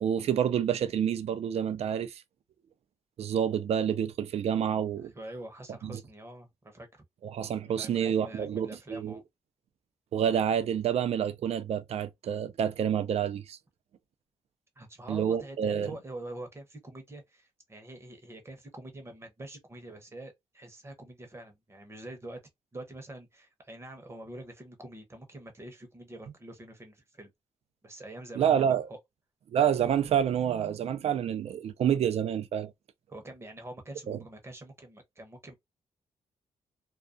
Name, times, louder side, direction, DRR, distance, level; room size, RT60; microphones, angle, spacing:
voice 1, 0.0-2.2 3.2-5.1 5.8-5.9 7.2-9.2 10.1-13.6 15.1-15.9 28.4-28.9 29.5-32.7 34.1-34.2, right 9 dB, 65° right, 0.4 m, -28 dB
voice 2, 5.1-7.0 7.6-9.2 14.8-22.4 22.7-27.3 27.8-29.0 33.1-35.5, right 1 dB, 20° right, 0.7 m, -45 dB
2.3 x 2.2 x 2.4 m
cardioid pair, 120°, 12 cm